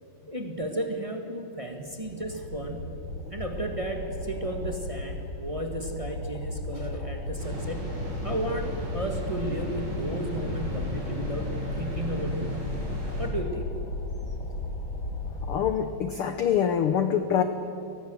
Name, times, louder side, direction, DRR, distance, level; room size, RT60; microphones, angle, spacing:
voice 1, 0.3-2.9 3.3-7.9 8.2-12.7 13.2-13.7, right 1 dB, 25° right, 4 dB, 0.8 m, -34 dB
sound 1, 1.8-15.6, left 2 dB, 40° left, 3.5 m, -35 dB
sound 2, 7.4-13.3, equal, 55° right, 6.9 m, -36 dB
voice 2, 15.5-17.4, left 8 dB, 80° left, 8 dB, 1.2 m, -25 dB
23.5 x 19.0 x 7.8 m, 2.8 s
omnidirectional pair, 3.8 m